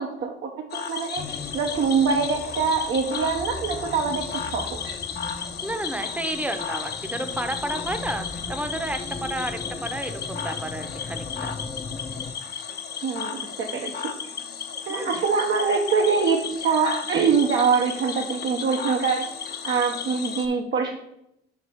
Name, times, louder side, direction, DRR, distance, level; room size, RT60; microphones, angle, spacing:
voice 1, 0.0-5.0 13.0-14.1 14.9-21.0, right 5 dB, 65° right, 1 dB, 0.8 m, -24 dB
Cricket / Frog, 0.7-20.5, left 7 dB, 55° left, 0.9 m, -34 dB
sound 1, 1.2-12.3, left 3 dB, 25° left, 0.6 m, -38 dB
voice 2, 5.6-11.6 14.9-15.2, right 1 dB, 5° right, 7 dB, 0.7 m, -31 dB
5.2 x 4.7 x 5.6 m, 0.80 s
cardioid pair, 90°, 20 cm